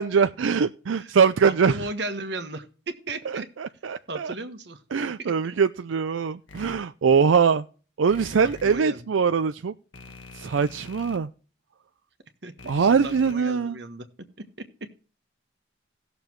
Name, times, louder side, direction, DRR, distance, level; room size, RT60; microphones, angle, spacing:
voice 1, 0.0-1.7 3.6-4.3 4.9-7.7 8.0-9.7 10.3-11.3 12.7-13.8, right 6 dB, 85° right, 0.4 m, -22 dB
voice 2, 1.4-2.7 3.1-3.5 4.1-4.8 5.2-5.3 8.4-9.1 12.4-14.0, right 2 dB, 60° right, 1.3 m, -35 dB
sound 1, 6.5-6.7 8.1-8.7 9.9-11.2 12.6-13.3, left 3 dB, 80° left, 1.4 m, -44 dB
18.0 x 6.9 x 3.1 m
head